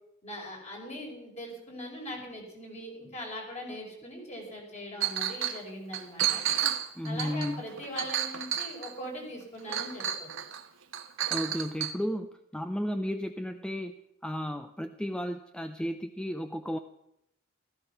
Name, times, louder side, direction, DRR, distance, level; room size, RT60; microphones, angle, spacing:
voice 1, 0.2-6.4 7.0-10.3, equal, 35° left, 0 dB, 5.5 m, -41 dB
Chink clink, 5.0-5.6 5.9-9.1 9.7-10.6 10.9-11.9, right 10 dB, 70° right, 1.1 m, -31 dB
voice 2, 7.0-7.6 11.3-14.0 14.2-16.8, equal, 5° left, 8 dB, 0.6 m, -33 dB
15.5 x 15.0 x 5.8 m, 0.80 s
head